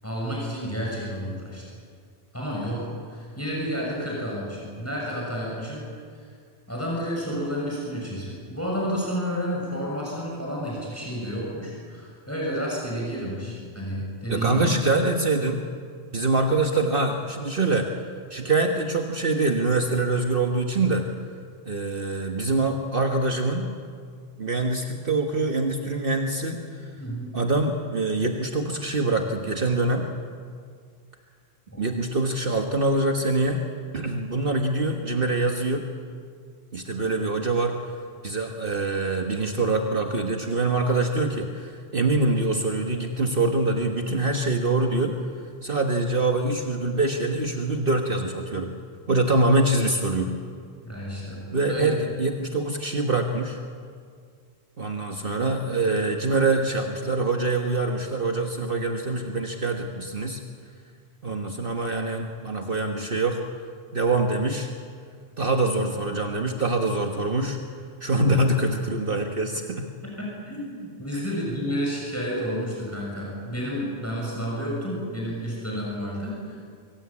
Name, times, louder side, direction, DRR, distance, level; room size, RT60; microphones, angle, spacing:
voice 1, 0.0-1.6 2.3-5.9 6.1-6.3 6.7-14.6 27.0-27.3 31.7-31.8 50.8-51.4 51.7-51.9 70.0-76.6, equal, 10° left, -3 dB, 6.6 m, -31 dB
voice 2, 14.3-15.6 16.1-17.9 18.3-21.0 21.6-23.7 24.4-26.9 27.3-30.1 31.8-33.6 33.9-35.9 36.7-37.7 38.2-45.1 45.6-48.7 49.1-50.3 51.5-53.6 54.8-60.4 61.2-63.4 63.9-64.7 65.4-67.6 68.0-69.9 71.1-71.2, right 2 dB, 55° right, 3 dB, 1.7 m, -24 dB
25.5 x 23.5 x 8.7 m, 2.1 s
omnidirectional pair, 1.1 m